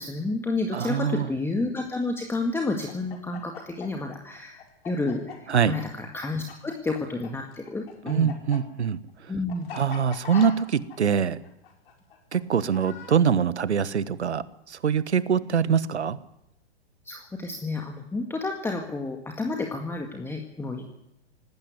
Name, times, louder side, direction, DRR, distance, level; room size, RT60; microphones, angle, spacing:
voice 1, 0.0-4.6 4.9-8.3 9.3-9.7 10.3-10.4 17.0-20.9, left 2 dB, 5° left, 2 dB, 1.9 m, -30 dB
voice 2, 0.7-1.3 5.5-5.8 8.1-9.0 9.7-11.4 12.3-16.2, right 7 dB, 80° right, 16 dB, 1.3 m, -24 dB
Chicken rooster, 2.8-7.3 7.5-13.2, left 8 dB, 60° left, 5.3 m, -41 dB
18.5 x 16.5 x 9.5 m, 0.86 s
hypercardioid pair, 115°, 33 cm